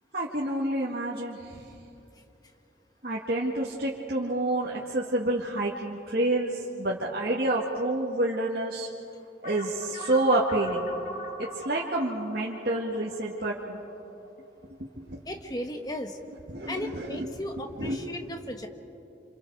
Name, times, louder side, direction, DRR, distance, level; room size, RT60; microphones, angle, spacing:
voice 1, 0.1-1.5 3.0-8.9 9.4-10.9 11.4-13.8 14.8-15.2 16.5-17.3 17.8-18.0, right 1 dB, 55° right, -4 dB, 1.9 m, -28 dB
sound 1, 9.4-14.3, left 1 dB, 45° left, 2.5 m, -41 dB
voice 2, 15.2-16.2 16.7-18.7, left 1 dB, 20° left, 4 dB, 1.5 m, -35 dB
29.0 x 28.0 x 4.7 m, 2.7 s
head